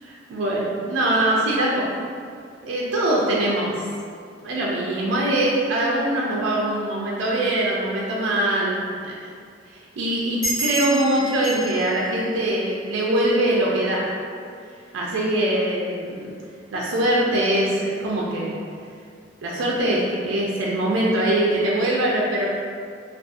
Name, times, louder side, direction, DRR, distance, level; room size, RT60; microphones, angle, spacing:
voice 1, 0.0-1.9 2.6-3.9 4.4-9.2 9.7-14.1 14.9-16.3 16.7-18.6 19.4-22.5, right 1 dB, 90° right, -4 dB, 0.4 m, -23 dB
sound 1, 10.4-13.5, right 1 dB, 20° left, 1.1 m, -31 dB
2.5 x 2.2 x 2.4 m, 2.3 s
head